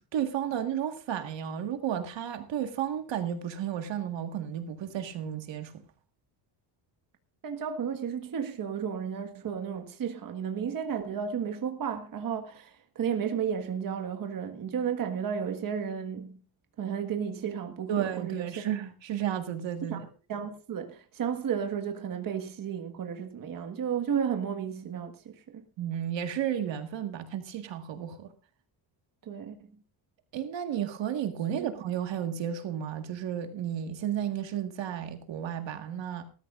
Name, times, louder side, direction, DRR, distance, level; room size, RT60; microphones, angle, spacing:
voice 1, 0.0-5.7 17.9-20.1 25.8-28.3 30.3-36.2, right 9 dB, 60° right, 1.8 m, -33 dB
voice 2, 7.4-16.4 16.8-18.6 19.9-20.0 20.3-25.6 29.2-29.7 31.5-31.7, right 7 dB, 45° right, 1.6 m, -33 dB
19.5 x 13.5 x 2.5 m
cardioid pair, 130°, 49 cm